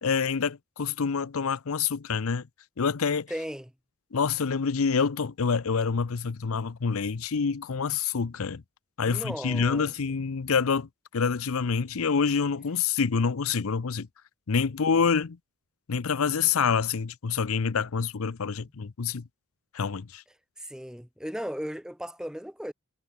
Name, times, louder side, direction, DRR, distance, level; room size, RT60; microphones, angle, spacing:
voice 1, 0.0-2.4 2.8-3.3 4.1-8.6 9.0-14.1 14.5-15.4 15.9-19.2 19.7-20.2, left 5 dB, 80° left, 0.6 m, -27 dB
voice 2, 3.3-3.7 9.0-9.9 20.6-22.7, equal, 5° right, 1.1 m, -36 dB
head